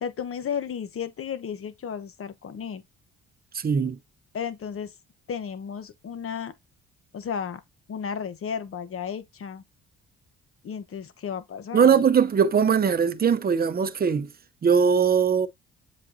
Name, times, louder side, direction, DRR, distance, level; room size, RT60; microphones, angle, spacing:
voice 1, 0.0-2.8 4.3-4.9 5.3-6.5 7.1-7.6 7.9-9.6 10.6-12.0, left 7 dB, 45° left, 1.0 m, -33 dB
voice 2, 3.5-4.0 11.7-14.3 14.6-15.5, right 6 dB, 30° right, 0.7 m, -20 dB
7.4 x 5.1 x 2.7 m
cardioid pair, 90°, 30 cm